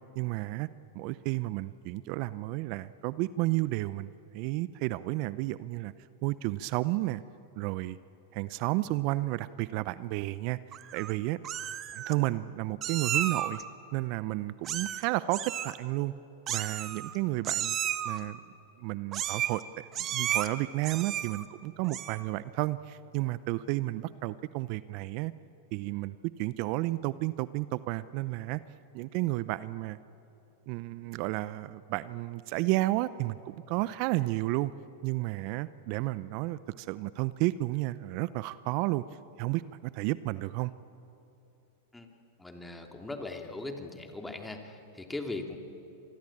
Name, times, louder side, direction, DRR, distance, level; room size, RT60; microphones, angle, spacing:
voice 1, 0.2-0.7 0.9-5.9 6.2-7.2 7.6-8.0 8.3-10.6 10.9-11.4 11.9-13.6 13.9-16.1 16.5-17.8 18.0-18.4 18.8-25.3 25.7-28.6 28.9-30.0 30.7-34.7 35.0-39.0 39.4-40.7, right 18 dB, 50° right, 16 dB, 0.6 m, -32 dB
Meow, 10.7-11.1 11.4-12.1 12.8-13.6 14.6-15.1 15.3-15.7 16.5-17.2 17.4-18.2 19.1-19.6 19.9-20.5 20.8-21.4 21.8-22.3, right 10 dB, 35° right, 1.3 m, -33 dB
voice 2, 42.4-45.6, left 2 dB, 10° left, 4 dB, 2.8 m, -39 dB
26.0 x 20.0 x 8.7 m, 2.9 s
hypercardioid pair, 105°, 0 cm